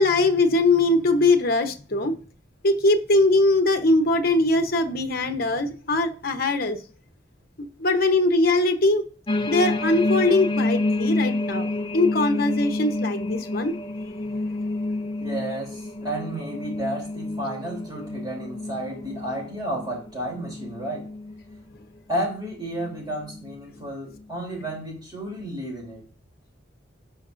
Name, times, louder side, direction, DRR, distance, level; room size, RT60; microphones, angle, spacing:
voice 1, 0.0-2.2 2.6-6.8 7.8-9.0 9.5-13.8, left 2 dB, 50° left, 1.0 m, -21 dB
sound 1, 9.3-21.6 22.1-22.4 22.8-23.5 24.2-24.3, left 2 dB, 25° left, 0.5 m, -29 dB
voice 2, 15.2-21.1 22.1-26.0, right 1 dB, 20° right, 3.3 m, -32 dB
16.0 x 5.9 x 2.6 m
head